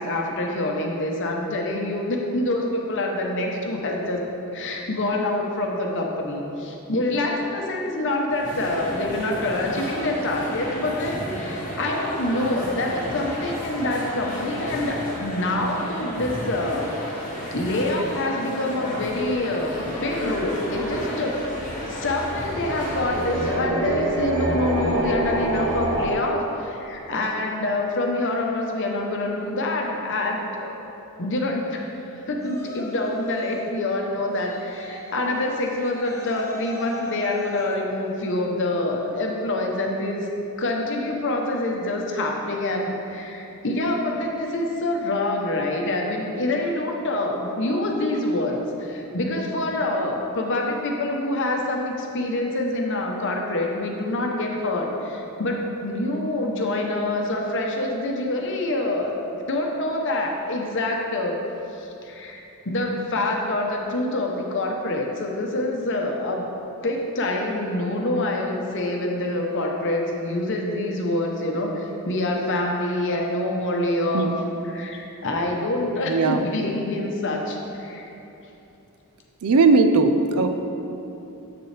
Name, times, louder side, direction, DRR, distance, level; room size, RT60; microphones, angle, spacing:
voice 1, 0.0-4.2 4.5-16.9 17.5-30.8 31.2-40.3 40.6-59.2 59.5-61.4 61.7-66.4 66.8-74.3 74.6-78.1, left 1 dB, 55° left, 1 dB, 0.9 m, -26 dB
sound 1, 8.3-23.6, left 1 dB, 35° left, 1.7 m, -33 dB
sound 2, 19.0-26.1, right 1 dB, 55° right, 1.1 m, -28 dB
Yell, 32.4-33.7 34.4-37.8, equal, 15° left, 0.7 m, -40 dB
voice 2, 76.1-76.4 79.4-80.5, right 3 dB, 70° right, 7 dB, 0.5 m, -18 dB
7.8 x 6.8 x 3.3 m, 2.9 s
head